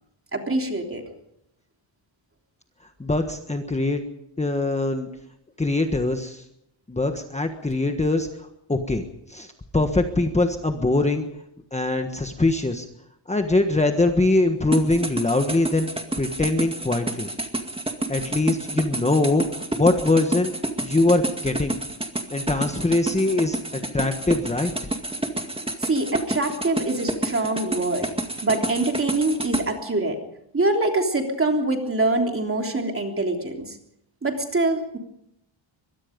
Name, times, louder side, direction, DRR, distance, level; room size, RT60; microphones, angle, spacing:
voice 1, 0.3-1.0 25.8-28.1 28.4-30.2 30.5-33.8 34.2-35.0, right 2 dB, 25° right, 3 dB, 3.4 m, -24 dB
voice 2, 3.0-4.0 4.4-5.1 5.6-6.4 6.9-9.0 9.3-11.3 11.7-12.9 13.3-15.9 16.2-17.3 18.1-20.5 20.8-21.8 22.3-24.7, left 2 dB, 15° left, 5 dB, 1.4 m, -22 dB
sound 1, 14.7-29.6, right 2 dB, 10° right, 2.1 m, -29 dB
24.0 x 22.0 x 5.3 m, 0.77 s
wide cardioid pair, 150°, 47 cm